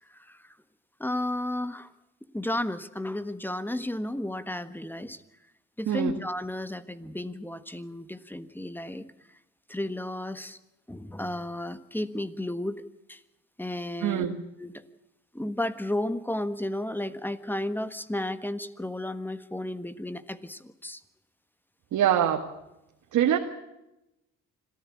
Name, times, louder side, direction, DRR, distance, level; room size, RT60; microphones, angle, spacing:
voice 1, 0.1-0.5 1.0-1.9 2.3-5.2 5.8-9.0 9.7-10.6 10.9-12.8 13.1-13.2 13.6-14.3 14.6-14.8 15.3-21.0, left 1 dB, 5° left, 12 dB, 1.4 m, -33 dB
voice 2, 14.0-14.4 21.9-22.4 23.1-23.4, right 10 dB, 75° right, 3 dB, 1.8 m, -24 dB
26.0 x 14.5 x 8.6 m, 0.92 s
cardioid pair, 90°, 30 cm